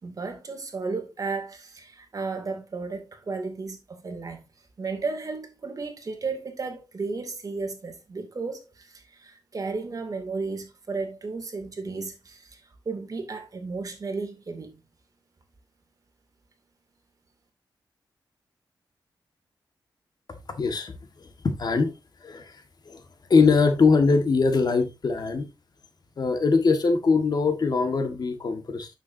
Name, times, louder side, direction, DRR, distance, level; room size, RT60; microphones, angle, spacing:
voice 1, 0.0-4.4 4.8-14.8, right 4 dB, 45° right, 2.5 m, -34 dB
voice 2, 20.6-21.9 22.2-22.6 22.8-23.0 23.3-25.4 26.2-28.9, left 4 dB, 55° left, 1.6 m, -22 dB
9.1 x 7.4 x 2.7 m
wide cardioid pair, 105°, 8 cm